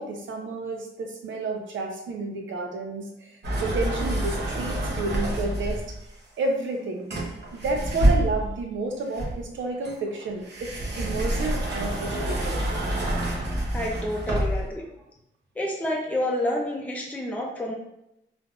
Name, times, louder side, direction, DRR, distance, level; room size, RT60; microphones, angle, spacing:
voice 1, 0.0-5.8 6.4-12.6, right 3 dB, 90° right, 2 dB, 0.6 m, -31 dB
sound 1, 3.4-6.0 7.1-8.6 9.1-14.7, right 1 dB, 60° right, 0.8 m, -27 dB
voice 2, 13.7-14.9 15.6-17.7, left 1 dB, 5° left, -1 dB, 0.5 m, -29 dB
3.3 x 2.5 x 2.3 m, 0.83 s
cardioid pair, 85°, 19 cm